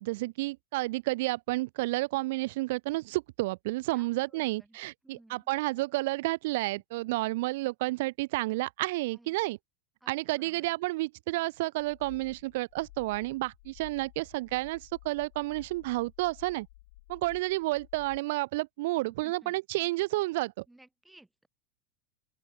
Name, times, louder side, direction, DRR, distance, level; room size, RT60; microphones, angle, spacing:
voice 1, 0.0-9.6 10.1-16.7 17.1-20.6, right 20 dB, 65° right, 0.4 m, -31 dB
voice 2, 3.9-4.8 5.0-5.5 9.1-9.4 10.0-10.8 19.1-19.6 20.7-21.5, right 1 dB, 5° right, 2.0 m, -59 dB
sound 1, 11.8-18.2, left 20 dB, 65° left, 2.6 m, -54 dB
open air
supercardioid pair, 150°, 0 cm